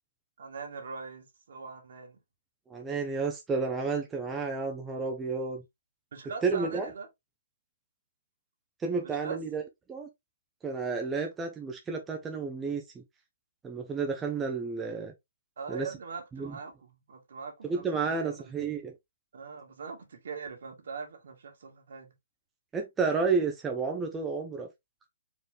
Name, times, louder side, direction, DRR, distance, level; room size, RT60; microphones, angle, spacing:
voice 1, 0.4-2.2 6.1-7.1 9.0-9.4 15.6-18.4 19.3-22.1, right 5 dB, 65° right, 1.8 m, -41 dB
voice 2, 2.7-5.6 6.4-6.9 8.8-9.6 9.9-10.1 10.6-13.0 13.6-15.1 15.7-15.9 16.3-16.6 17.6-18.9 22.7-24.7, right 4 dB, 10° right, 0.5 m, -31 dB
4.5 x 3.1 x 3.4 m
hypercardioid pair, 170°, 0 cm